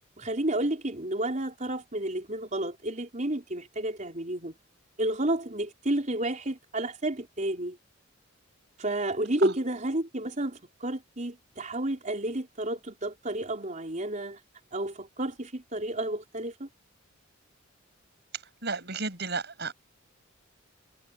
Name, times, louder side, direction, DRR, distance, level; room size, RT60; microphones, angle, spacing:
voice 1, 0.2-4.5 5.0-7.8 8.8-14.4 14.7-16.7, right 1 dB, 35° right, 4.7 m, -31 dB
voice 2, 18.6-19.7, right 4 dB, 55° right, 6.4 m, -32 dB
head